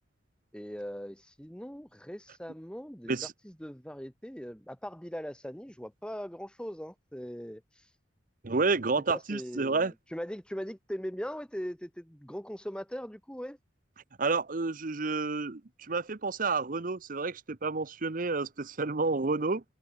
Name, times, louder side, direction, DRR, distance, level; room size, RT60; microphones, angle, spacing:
voice 1, 0.5-3.2 3.4-8.0 9.1-13.6, equal, 5° left, 3.3 m, -40 dB
voice 2, 8.4-9.9 14.2-19.6, right 3 dB, 50° right, 0.9 m, -30 dB
head